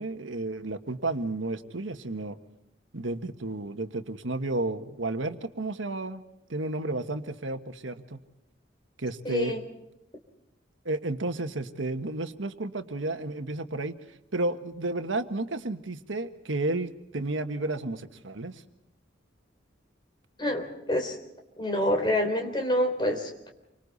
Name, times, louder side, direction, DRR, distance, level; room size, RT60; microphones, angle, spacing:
voice 1, 0.0-2.4 2.9-6.2 6.5-8.2 9.0-9.6 10.8-13.9 14.3-18.5, right 2 dB, 90° right, 7 dB, 1.5 m, -32 dB
voice 2, 9.2-9.6 20.4-21.2 21.6-23.5, left 1 dB, 25° left, 5 dB, 3.7 m, -27 dB
29.0 x 25.0 x 4.1 m, 0.85 s
head